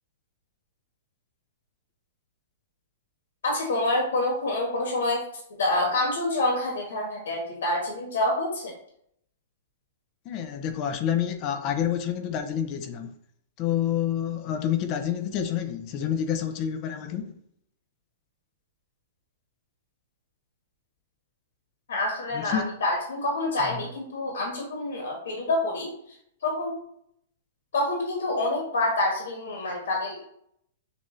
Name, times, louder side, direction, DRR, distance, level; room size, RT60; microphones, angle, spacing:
voice 1, 3.4-5.2 5.6-8.7 21.9-25.9 26.4-26.8 27.7-30.2, left 2 dB, 85° left, 1.2 m, -27 dB
voice 2, 10.3-13.1 13.6-17.3 22.3-22.7, left 9 dB, 30° left, 0.4 m, -28 dB
6.6 x 2.4 x 3.0 m
hypercardioid pair, 165°, 0 cm